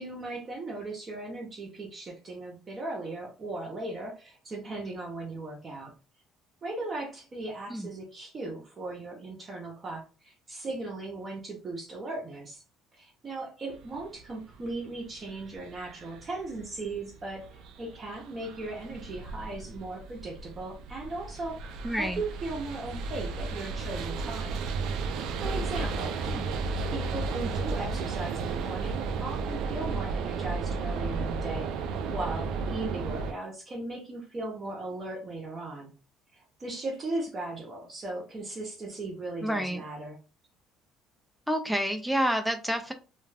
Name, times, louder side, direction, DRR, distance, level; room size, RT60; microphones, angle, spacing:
voice 1, 0.0-5.9 6.6-12.6 13.0-21.6 22.0-24.7 25.4-26.2 26.9-36.0 36.3-40.2, right 2 dB, 25° right, 0.7 m, -37 dB
sound 1, 13.7-33.3, right 4 dB, 65° right, 0.4 m, -34 dB
voice 2, 21.8-22.2 26.3-26.5 39.4-39.8 41.5-42.9, equal, ahead, 0.4 m, -29 dB
2.3 x 2.3 x 3.2 m
cardioid pair, 150°, 0 cm